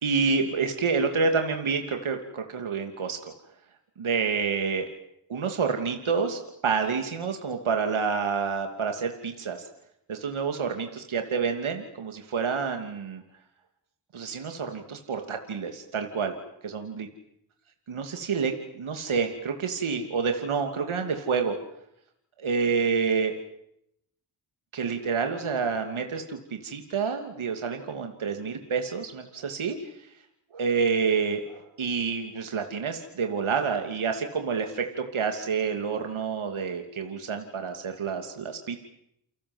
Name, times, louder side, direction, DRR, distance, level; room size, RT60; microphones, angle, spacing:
voice 1, 0.0-3.3 4.0-4.9 5.3-9.7 10.1-13.2 14.1-16.3 16.7-17.1 17.9-21.6 22.4-23.3 24.7-30.1 30.5-38.8, right 5 dB, 75° right, 5 dB, 2.9 m, -28 dB
30.0 x 23.0 x 8.1 m, 0.77 s
cardioid pair, 45°, 49 cm